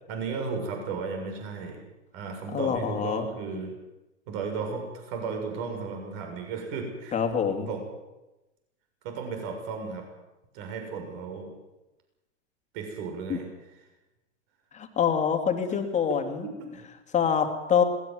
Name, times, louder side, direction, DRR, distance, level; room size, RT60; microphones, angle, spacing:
voice 1, 0.1-1.8 2.1-3.7 4.3-7.2 7.5-7.8 9.0-10.0 10.5-11.5 12.7-13.5 16.1-16.2 16.4-16.6, right 5 dB, 50° right, 4 dB, 7.0 m, -34 dB
voice 2, 2.5-3.3 7.1-7.7 13.3-13.4 14.7-16.5 17.1-17.8, left 7 dB, 20° left, 5 dB, 3.0 m, -25 dB
21.5 x 19.5 x 8.1 m, 1.0 s
hypercardioid pair, 120°, 37 cm